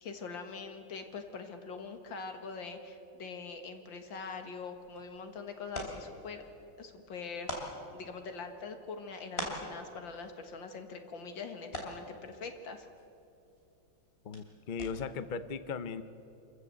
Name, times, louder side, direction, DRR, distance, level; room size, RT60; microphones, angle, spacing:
voice 1, 0.0-6.4 6.8-12.9, left 4 dB, 80° left, 6 dB, 2.4 m, -43 dB
sound 1, 4.6-15.3, left 1 dB, 30° left, 3.5 m, -46 dB
voice 2, 14.2-16.0, left 5 dB, 55° left, 12 dB, 0.5 m, -37 dB
27.0 x 14.5 x 8.0 m, 2.7 s
omnidirectional pair, 2.0 m